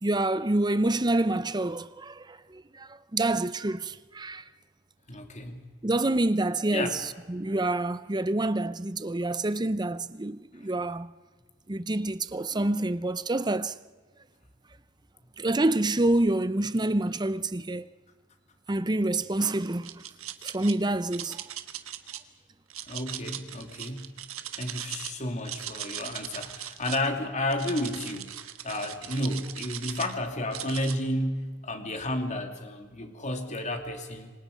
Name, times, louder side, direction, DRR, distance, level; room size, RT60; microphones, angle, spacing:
voice 1, 0.0-4.4 5.8-11.1 11.7-13.7 15.4-17.9 18.7-20.0 20.4-21.4, right 2 dB, 20° right, 0.6 m, -27 dB
voice 2, 5.1-5.7 6.7-6.9 22.9-24.1 24.6-28.3 28.6-34.3, left 1 dB, 30° left, 2.5 m, -32 dB
sound 1, 19.6-20.7 21.1-22.2 22.7-25.1 25.4-27.1 27.5-30.1 30.5-31.0, right 11 dB, 70° right, 1.5 m, -39 dB
27.0 x 25.5 x 5.2 m
head